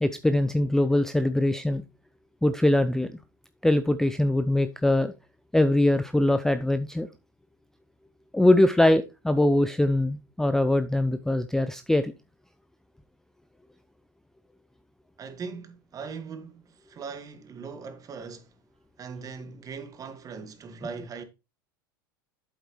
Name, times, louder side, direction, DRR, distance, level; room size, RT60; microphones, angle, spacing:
voice 1, 0.0-1.8 2.4-3.1 3.6-5.1 5.5-7.1 8.3-12.1, left 1 dB, 5° left, 0.5 m, -22 dB
voice 2, 15.2-18.6 19.0-21.2, right 5 dB, 30° right, 1.7 m, -40 dB
8.2 x 7.8 x 3.1 m
hypercardioid pair, 95°, 11 cm